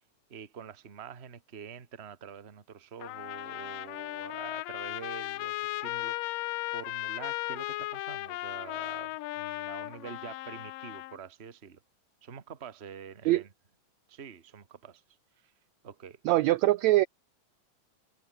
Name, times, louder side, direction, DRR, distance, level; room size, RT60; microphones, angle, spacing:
voice 1, 0.3-6.4 6.7-11.8 12.2-13.5 14.1-15.0 15.4-15.5 15.8-16.2, right 7 dB, 35° right, 1.1 m, -46 dB
Trumpet, 3.0-11.2, left 18 dB, 80° left, 2.3 m, -36 dB
voice 2, 16.2-17.1, right 17 dB, 85° right, 1.6 m, -23 dB
omnidirectional pair, 3.9 m